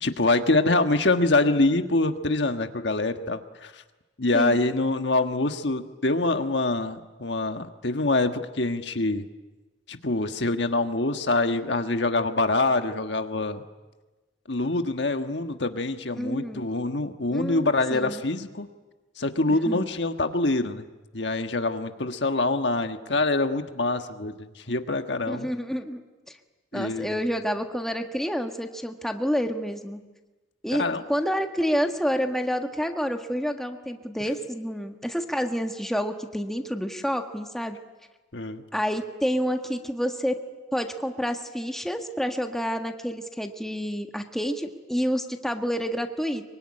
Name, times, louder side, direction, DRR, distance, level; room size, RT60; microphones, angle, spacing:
voice 1, 0.0-3.8 4.2-9.2 9.9-13.6 14.5-18.7 19.2-20.8 21.1-25.5 26.7-27.2 30.8-31.0 38.3-38.6, left 2 dB, 65° left, 7 dB, 1.5 m, -25 dB
voice 2, 4.3-4.6 16.2-16.7 17.3-18.2 19.6-19.8 25.3-26.0 26.3-26.4 26.7-30.0 30.6-37.8 38.7-40.4 40.7-46.4, equal, ahead, 5 dB, 1.5 m, -28 dB
24.0 x 24.0 x 9.9 m, 1.1 s
head